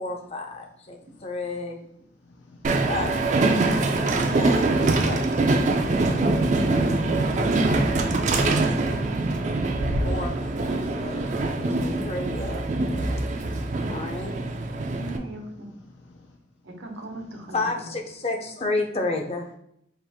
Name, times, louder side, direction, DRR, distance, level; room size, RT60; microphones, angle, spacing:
voice 1, 0.0-1.8 2.9-3.1 3.6-3.7 4.0-5.4 5.7-6.3 7.3-8.8 10.0-11.2 11.6-12.7 13.9-14.3 17.5-19.5, left 2 dB, 35° left, 3 dB, 0.5 m, -32 dB
voice 2, 2.3-2.9 9.3-10.1 13.3-13.8 15.6-16.2, left 2 dB, 85° left, 0 dB, 0.5 m, -52 dB
Train, 2.6-15.2, right 2 dB, 40° right, 0.3 m, -24 dB
voice 3, 11.7-12.0 15.0-15.7 16.6-17.9, right 1 dB, 85° right, 2 dB, 0.9 m, -37 dB
4.5 x 2.5 x 3.5 m, 0.74 s
head